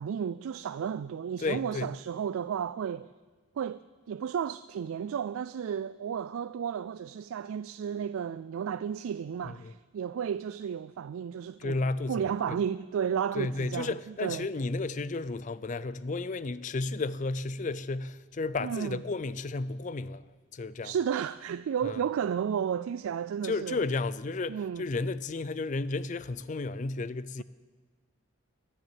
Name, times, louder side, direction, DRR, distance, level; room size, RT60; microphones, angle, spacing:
voice 1, 0.0-3.1 3.6-11.8 12.1-14.5 18.6-19.0 20.8-23.8 24.5-24.9, right 8 dB, 80° right, 0.3 m, -33 dB
voice 2, 1.4-1.9 9.4-9.7 11.6-12.6 13.3-20.2 20.5-20.9 21.8-22.0 23.4-27.4, left 3 dB, 35° left, 0.4 m, -33 dB
11.0 x 10.0 x 9.1 m
head